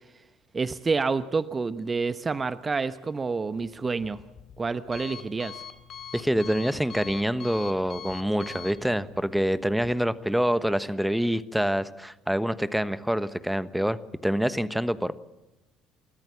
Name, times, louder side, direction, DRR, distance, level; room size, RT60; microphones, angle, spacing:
voice 1, 0.5-4.2 4.6-5.6, right 4 dB, 30° right, 13 dB, 0.9 m, -28 dB
Alarm, 3.5-9.9, left 8 dB, 50° left, 2.9 m, -44 dB
voice 2, 6.1-14.0 14.2-15.1, equal, 5° right, 14 dB, 1.2 m, -26 dB
29.0 x 13.5 x 7.3 m, 1.0 s
hypercardioid pair, 60°, 0 cm